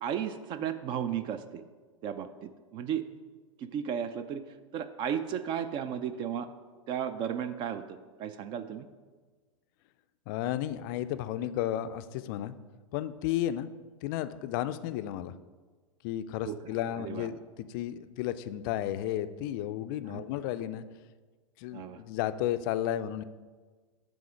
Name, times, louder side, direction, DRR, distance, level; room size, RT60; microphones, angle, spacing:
voice 1, 0.0-1.6 2.0-3.0 3.6-4.4 4.7-6.5 6.9-8.9 16.4-16.5 17.0-17.3 20.0-20.2 21.7-22.0, right 8 dB, 30° right, 11 dB, 0.3 m, -34 dB
voice 2, 10.3-12.5 12.9-13.7 14.0-15.3 16.0-20.8 21.6-23.2, left 12 dB, 40° left, 12 dB, 0.4 m, -33 dB
8.4 x 3.7 x 4.8 m, 1.4 s
figure-of-eight pair, 95°, 17 cm